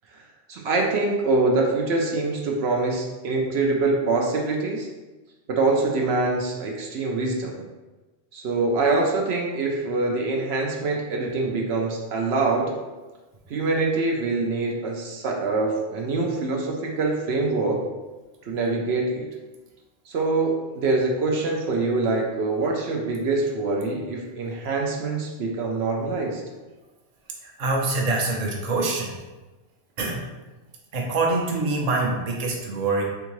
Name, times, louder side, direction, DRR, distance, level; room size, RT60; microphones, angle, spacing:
voice 1, 0.5-4.9 5.5-7.6 8.3-12.7 13.5-17.8 18.4-19.3 20.1-26.4, right 3 dB, 70° right, 0 dB, 0.8 m, -24 dB
voice 2, 27.4-29.1 30.0-30.2 30.9-33.0, right 3 dB, 40° right, -1 dB, 0.7 m, -25 dB
3.6 x 3.5 x 3.1 m, 1.2 s
omnidirectional pair, 1.1 m